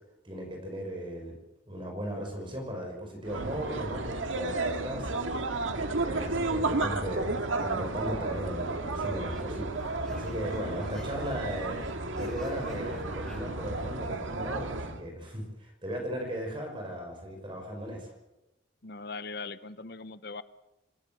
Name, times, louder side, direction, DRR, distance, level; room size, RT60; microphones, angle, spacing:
voice 1, 0.2-1.4 1.7-5.5 5.7-18.1, equal, 25° right, 2 dB, 5.9 m, -37 dB
sound 1, 3.2-15.0, right 2 dB, 85° right, 2.1 m, -33 dB
sound 2, 7.1-7.6 7.9-8.0 8.2-8.3 8.9-13.4, equal, 5° left, 7.0 m, -49 dB
voice 2, 18.8-20.4, left 3 dB, 55° left, 14 dB, 0.9 m, -40 dB
27.0 x 15.5 x 7.8 m, 0.91 s
head